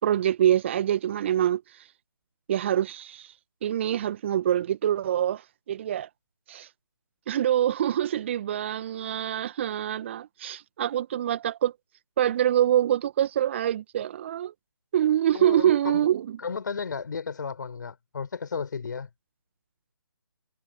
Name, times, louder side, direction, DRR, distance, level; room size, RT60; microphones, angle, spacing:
voice 1, 0.0-1.6 2.5-3.3 3.6-5.4 5.7-6.1 6.5-6.7 7.3-11.7 12.2-14.5 14.9-16.4, right 11 dB, 30° right, 1.6 m, -25 dB
voice 2, 15.3-16.1 16.4-19.1, left 5 dB, 50° left, 4.9 m, -33 dB
figure-of-eight pair, 150°, 13 cm